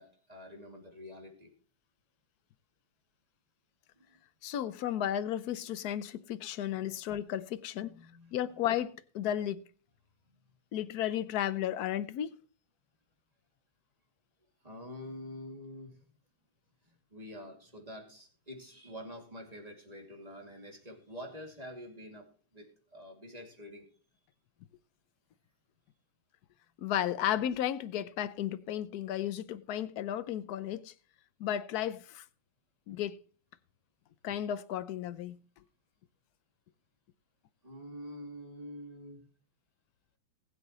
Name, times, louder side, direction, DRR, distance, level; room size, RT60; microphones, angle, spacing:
voice 1, 0.0-1.5 4.0-4.2 7.8-8.6 14.6-16.0 16.9-23.8 37.6-39.3, left 1 dB, 20° right, 2.6 m, -47 dB
voice 2, 4.4-7.9 8.3-9.6 10.7-12.4 26.8-30.9 31.4-32.2 32.9-33.2 34.2-35.4, left 11 dB, 65° left, 1.0 m, -34 dB
19.5 x 8.1 x 3.1 m
omnidirectional pair, 2.2 m